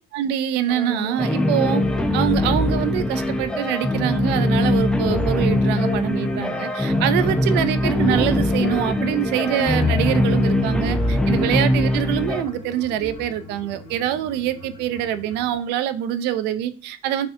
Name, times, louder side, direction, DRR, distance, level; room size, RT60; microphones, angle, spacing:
voice 1, 0.1-1.8 2.1-17.3, right 11 dB, 90° right, 0.4 m, -24 dB
sound 1, 0.7-15.5, left 2 dB, 45° left, 0.9 m, -34 dB
sound 2, 1.2-12.4, left 1 dB, 5° left, 0.3 m, -21 dB
3.4 x 2.6 x 3.3 m
cardioid pair, 110°, 17 cm